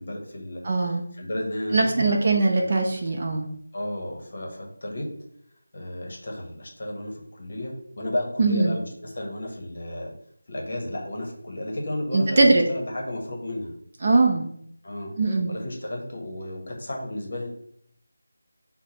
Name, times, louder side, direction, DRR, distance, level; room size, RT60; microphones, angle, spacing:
voice 1, 0.0-2.2 2.6-2.7 3.7-5.1 5.7-10.1 10.5-13.7 14.8-17.5, left 1 dB, 40° left, 0 dB, 0.9 m, -33 dB
voice 2, 0.6-1.0 1.7-3.5 8.4-8.7 12.1-12.6 14.0-14.5 15.2-15.5, right 3 dB, 30° right, 1 dB, 0.4 m, -21 dB
4.6 x 2.1 x 2.8 m, 0.67 s
figure-of-eight pair, 175°, 0 cm